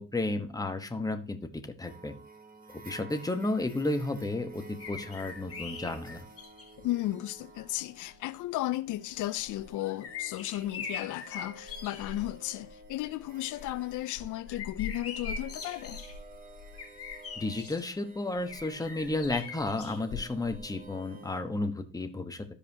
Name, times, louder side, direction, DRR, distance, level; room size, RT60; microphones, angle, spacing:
voice 1, 0.0-2.1 2.7-6.3 17.4-22.5, left 2 dB, 10° left, 1.1 m, -33 dB
sound 1, 1.8-21.4, right 3 dB, 30° right, 1.5 m, -52 dB
sound 2, 4.8-6.8 7.7-7.8 9.4-12.3 12.6-13.0 13.4-17.8 18.5-20.6 20.9-21.0, left 5 dB, 50° left, 1.9 m, -41 dB
voice 2, 6.8-16.0, left 16 dB, 80° left, 0.5 m, -34 dB
13.5 x 5.0 x 2.8 m
cardioid pair, 90°, 30 cm